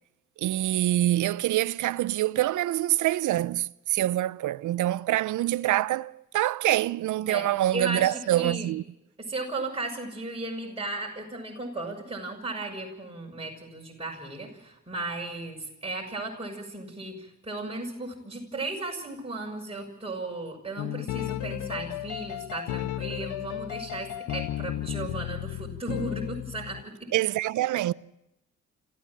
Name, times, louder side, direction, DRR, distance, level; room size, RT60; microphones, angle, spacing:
voice 1, 0.4-8.8 27.1-27.9, right 14 dB, 70° right, 0.7 m, -25 dB
voice 2, 7.7-8.7 9.2-27.1, right 2 dB, 20° right, 6.8 m, -35 dB
sound 1, 20.8-26.8, left 14 dB, 80° left, 0.8 m, -34 dB
26.5 x 15.5 x 7.5 m
supercardioid pair, 55°, 31 cm